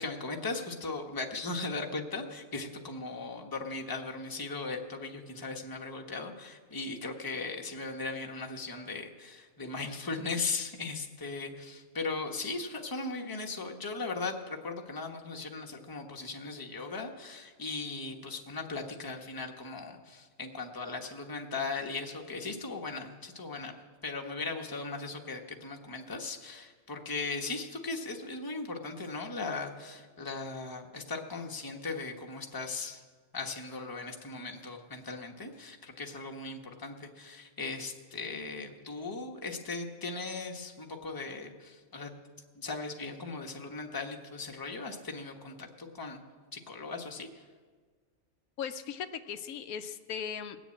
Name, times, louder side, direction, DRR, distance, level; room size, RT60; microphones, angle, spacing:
voice 1, 0.0-23.7 24.0-33.0 33.3-42.1 42.5-46.2 46.5-47.4, left 3 dB, 15° left, 2 dB, 1.0 m, -38 dB
voice 2, 48.6-50.6, left 7 dB, 85° left, 9 dB, 1.2 m, -38 dB
19.5 x 7.1 x 8.6 m, 1.5 s
omnidirectional pair, 1.5 m